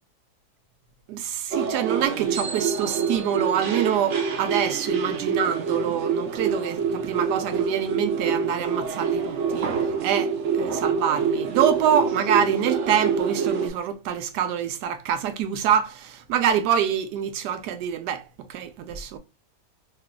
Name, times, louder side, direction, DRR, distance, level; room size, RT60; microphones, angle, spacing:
voice 1, 1.1-9.7 10.0-10.3 10.6-18.2 18.5-19.2, right 9 dB, 85° right, 1.2 m, -25 dB
sound 1, 1.5-13.7, right 6 dB, 60° right, 0.8 m, -26 dB
3.2 x 2.3 x 3.6 m
omnidirectional pair, 1.7 m